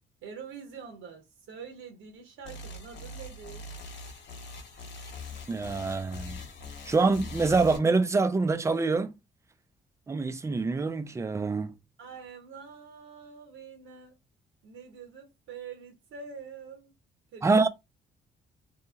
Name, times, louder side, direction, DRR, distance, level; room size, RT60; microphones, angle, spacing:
voice 1, 0.2-3.6 12.0-14.2 14.6-16.9 17.3-17.7, right 6 dB, 85° right, 0.8 m, -45 dB
sound 1, 2.4-7.8, left 3 dB, 65° left, 1.0 m, -42 dB
voice 2, 5.5-6.4 6.9-9.1 10.1-11.7 17.4-17.7, right 3 dB, 15° right, 0.3 m, -25 dB
2.7 x 2.7 x 2.4 m
cardioid pair, 90°, 20 cm